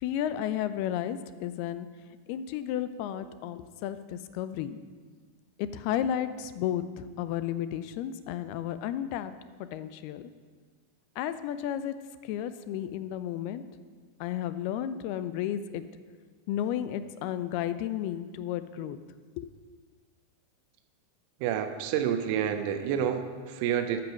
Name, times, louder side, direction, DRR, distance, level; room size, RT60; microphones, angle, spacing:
voice 1, 0.0-1.9 2.3-4.8 5.6-9.3 9.7-10.3 11.2-11.9 12.3-13.6 14.2-15.8 16.5-19.0 19.4-19.5, left 10 dB, 45° left, 13 dB, 0.5 m, -33 dB
voice 2, 21.4-24.0, right 9 dB, 45° right, 7 dB, 1.0 m, -29 dB
13.0 x 5.9 x 6.2 m, 1.5 s
figure-of-eight pair, 90°, 0 cm